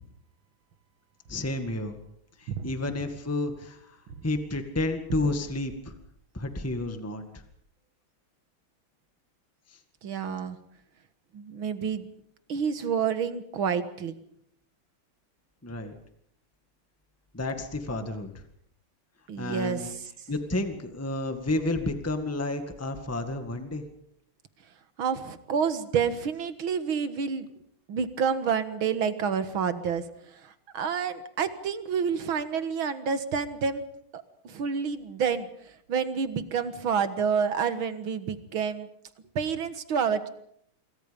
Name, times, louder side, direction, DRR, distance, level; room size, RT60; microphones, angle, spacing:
voice 1, 1.3-2.0 2.4-5.9 6.3-7.4 9.7-9.8 15.6-16.0 17.3-18.4 19.4-19.9 20.3-23.8, left 2 dB, 5° left, 6 dB, 1.8 m, -31 dB
voice 2, 10.0-10.6 11.3-12.1 12.5-14.1 19.3-19.9 25.0-27.5 27.9-30.0 30.4-33.9 34.1-35.5 35.9-38.9 39.4-40.3, right 6 dB, 70° right, 11 dB, 2.3 m, -28 dB
27.5 x 23.5 x 5.4 m, 0.69 s
omnidirectional pair, 2.4 m